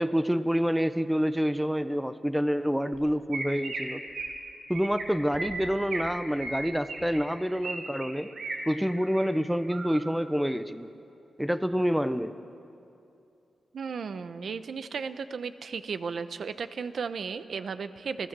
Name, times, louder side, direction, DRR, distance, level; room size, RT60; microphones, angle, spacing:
voice 1, 0.0-4.0 4.7-8.3 8.7-10.9 11.4-12.3, equal, 5° right, 12 dB, 0.7 m, -27 dB
Chirp tweet, 2.9-3.0 3.3-3.8 4.1-4.3 4.7-5.0 5.3-6.1 6.4-7.7 8.0-8.6 9.0-9.3 9.7-10.0, right 3 dB, 90° right, 4.1 m, -36 dB
voice 2, 13.7-18.3, right 5 dB, 65° right, 11 dB, 0.9 m, -35 dB
28.0 x 17.5 x 7.5 m, 2.7 s
wide cardioid pair, 110°, 0 cm